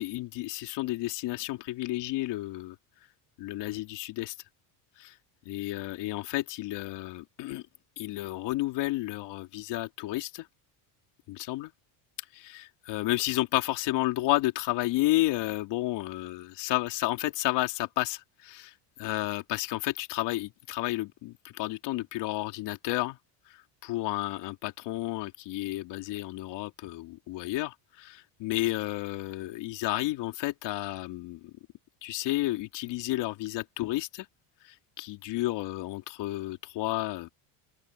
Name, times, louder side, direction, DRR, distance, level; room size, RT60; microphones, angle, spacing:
voice 1, 0.0-2.7 3.4-4.3 5.0-5.1 5.4-7.6 8.0-10.5 11.3-11.7 12.3-23.2 23.8-31.5 32.0-34.3 35.0-37.3, left 17 dB, 60° left, 3.1 m, -31 dB
cardioid pair, 145°, 46 cm